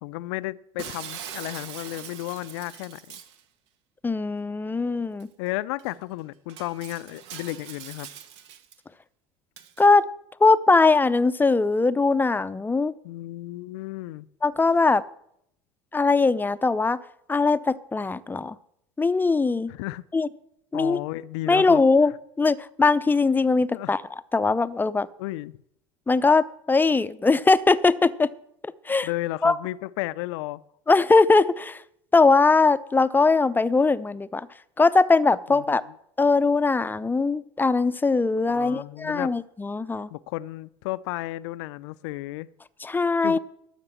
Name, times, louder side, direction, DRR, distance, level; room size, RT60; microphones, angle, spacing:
voice 1, 0.0-3.2 5.4-8.1 13.0-14.3 19.7-20.0 20.7-21.8 23.7-23.9 25.2-25.5 29.0-30.6 35.5-36.0 38.5-39.3 40.1-42.5 43.2-43.4, left 18 dB, 70° left, 0.5 m, -33 dB
Shatter, 0.8-3.4 5.2-5.3 5.8-5.9 6.5-8.8 9.6-9.9, right 9 dB, 75° right, 1.4 m, -41 dB
voice 2, 4.0-5.3 9.8-10.0 10.4-12.9 14.4-15.0 15.9-17.0 17.3-18.5 19.0-19.7 20.1-20.3 20.7-21.0 21.5-22.1 22.4-24.0 24.3-25.1 26.1-28.3 28.9-29.1 29.4-29.5 30.9-31.8 32.1-34.5 34.8-35.8 36.2-40.1 42.8-43.4, left 3 dB, 15° left, 0.6 m, -20 dB
12.5 x 6.6 x 7.4 m
hypercardioid pair, 80°, 15 cm